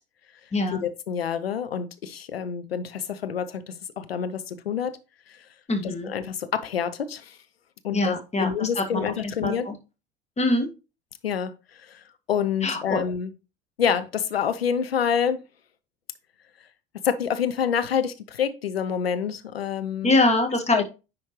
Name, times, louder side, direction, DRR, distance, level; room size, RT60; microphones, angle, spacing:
voice 1, 0.7-4.9 5.3-5.4 5.8-7.4 7.8-9.7 11.2-12.0 12.3-13.3 13.8-15.4 17.0-20.2 20.7-20.8, left 8 dB, 80° left, 11 dB, 0.8 m, -27 dB
voice 2, 5.7-6.1 7.9-9.1 9.4-9.7 10.4-10.7 12.6-13.0 20.0-20.8, left 2 dB, 20° left, 5 dB, 1.7 m, -24 dB
9.7 x 4.4 x 3.1 m, 0.30 s
figure-of-eight pair, 65°, 30 cm